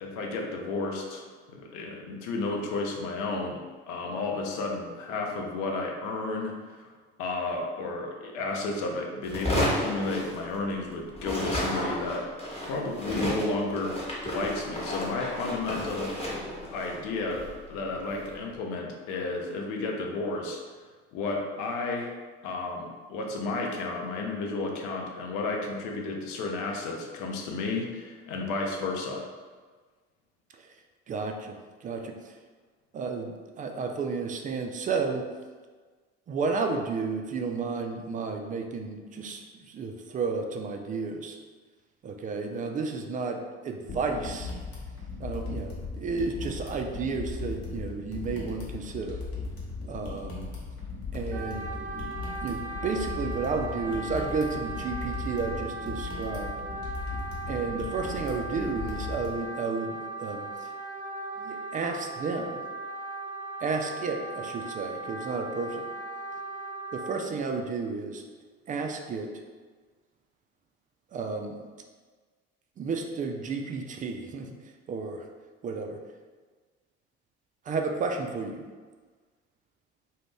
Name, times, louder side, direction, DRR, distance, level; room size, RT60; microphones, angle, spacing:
voice 1, 0.0-3.6 3.9-6.9 7.2-12.2 12.6-16.3 16.7-20.6 21.1-22.1 22.4-29.3, left 3 dB, 65° left, 1 dB, 0.6 m, -32 dB
sound 1, 9.2-10.9 11.1-18.4, left 1 dB, 20° left, 1.0 m, -33 dB
voice 2, 31.1-32.3 32.9-35.2 36.3-41.4 42.0-44.5 45.2-49.2 49.9-50.5 51.1-51.7 52.4-56.6 57.5-60.7 61.4-62.6 63.6-65.9 66.9-68.2 68.7-69.3 71.1-71.6 72.8-74.5 74.9-75.2 75.6-76.0 77.7-78.6, right 4 dB, 25° right, 4 dB, 0.3 m, -32 dB
sound 2, 43.9-59.3, left 4 dB, 45° left, 1.0 m, -37 dB
Wind instrument woodwind instrument, 51.3-67.2, right 2 dB, 85° right, 0.6 m, -38 dB
2.4 x 2.2 x 3.5 m, 1.4 s
hypercardioid pair, 60°, 32 cm